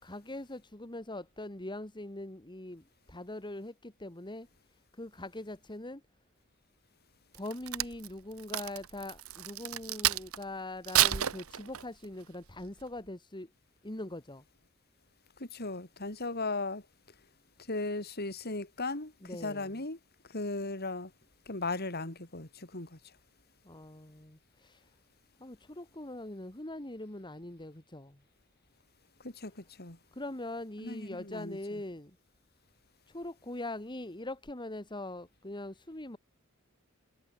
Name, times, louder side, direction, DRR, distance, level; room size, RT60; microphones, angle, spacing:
voice 1, 0.0-4.5 4.9-6.0 7.3-13.5 13.8-14.4 19.2-19.8 23.6-24.9 25.4-28.2 30.1-32.2 33.1-36.2, left 1 dB, 20° left, 2.6 m, -42 dB
Crack, 7.3-10.4 10.8-12.0 12.6-12.8, right 12 dB, 85° right, 1.0 m, -30 dB
voice 2, 15.4-16.8 17.7-20.0 20.3-21.1 21.5-23.0 29.2-30.0 30.8-31.8, left 2 dB, 50° left, 5.1 m, -37 dB
head